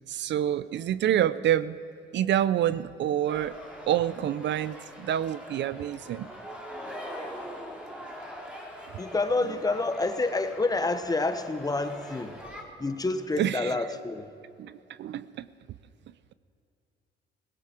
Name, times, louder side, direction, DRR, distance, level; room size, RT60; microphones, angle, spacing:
voice 1, 0.1-1.8 2.1-3.5 3.9-6.3 13.4-13.7 14.6-15.5, right 11 dB, 65° right, 16 dB, 0.5 m, -27 dB
sound 1, 3.3-12.6, equal, 5° right, 2.9 m, -43 dB
voice 2, 9.0-12.5 12.8-14.3, left 3 dB, 20° left, 9 dB, 1.0 m, -28 dB
18.0 x 17.0 x 4.4 m, 2.7 s
cardioid pair, 90°, 20 cm